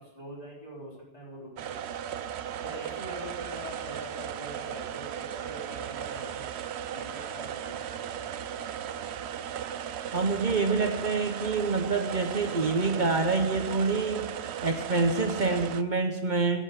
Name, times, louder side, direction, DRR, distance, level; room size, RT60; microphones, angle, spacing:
voice 1, 0.0-1.8 2.0-2.2 2.6-6.5 6.8-8.3, equal, 35° left, -4 dB, 4.2 m, -44 dB
sound 1, 1.6-15.8, right 9 dB, 85° right, 0.9 m, -36 dB
voice 2, 10.1-14.3 14.6-16.6, right 4 dB, 50° right, 5 dB, 0.9 m, -26 dB
9.9 x 7.9 x 8.5 m, 1.1 s
omnidirectional pair, 1.1 m